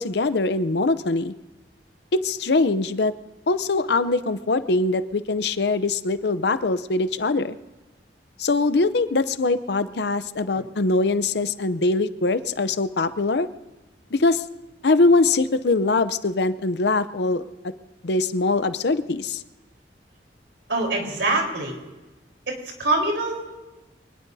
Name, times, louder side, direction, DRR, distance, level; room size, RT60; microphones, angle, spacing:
voice 1, 0.0-1.3 2.2-3.1 3.5-7.6 8.4-13.5 14.1-14.4 14.8-17.4 18.0-19.4, left 3 dB, 70° left, 13 dB, 0.7 m, -22 dB
voice 2, 20.7-21.7 22.5-22.6 22.8-23.5, right 2 dB, 90° right, 1 dB, 4.1 m, -24 dB
25.0 x 19.5 x 2.8 m, 1.1 s
head